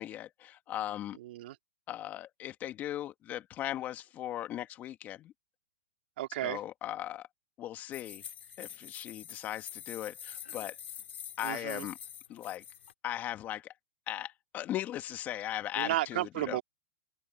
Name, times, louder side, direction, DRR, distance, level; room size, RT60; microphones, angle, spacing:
voice 1, 0.0-1.2 1.9-5.3 6.4-7.3 7.6-8.2 8.6-10.8 11.4-12.0 12.3-12.6 13.0-13.7 14.1-16.6, left 12 dB, 25° left, 1.8 m, -38 dB
voice 2, 1.2-1.5 6.2-6.6 11.4-11.9 15.8-16.6, right 15 dB, 60° right, 3.1 m, -33 dB
sound 1, 7.9-12.9, left 9 dB, 80° left, 3.3 m, -46 dB
open air
hypercardioid pair, 140°, 6 cm